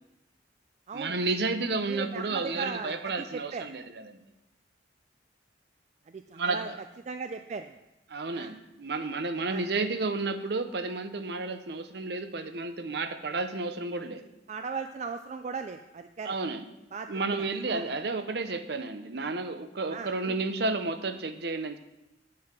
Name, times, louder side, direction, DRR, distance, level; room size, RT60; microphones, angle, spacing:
voice 1, 0.9-4.2 6.3-6.8 8.1-14.2 16.2-16.7 17.1-21.8, right 3 dB, 60° right, 9 dB, 0.7 m, -31 dB
voice 2, 1.9-3.6 6.1-6.7 7.1-7.8 8.3-8.5 9.5-9.7 14.5-16.3 16.9-17.1 17.3-17.9 19.9-20.1, right 5 dB, 40° right, 8 dB, 0.3 m, -37 dB
7.8 x 7.5 x 6.0 m, 0.92 s
head